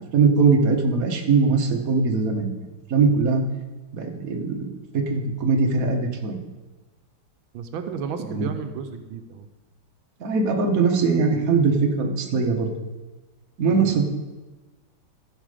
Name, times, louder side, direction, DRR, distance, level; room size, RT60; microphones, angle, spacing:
voice 1, 0.0-2.5 2.9-3.4 3.9-4.7 4.9-6.4 8.3-8.5 10.2-12.7 13.6-14.0, right 4 dB, 50° right, 2 dB, 1.4 m, -21 dB
voice 2, 7.5-9.5 13.6-14.0, right 6 dB, 85° right, 6 dB, 1.5 m, -33 dB
15.0 x 5.5 x 4.9 m, 1.2 s
omnidirectional pair, 2.2 m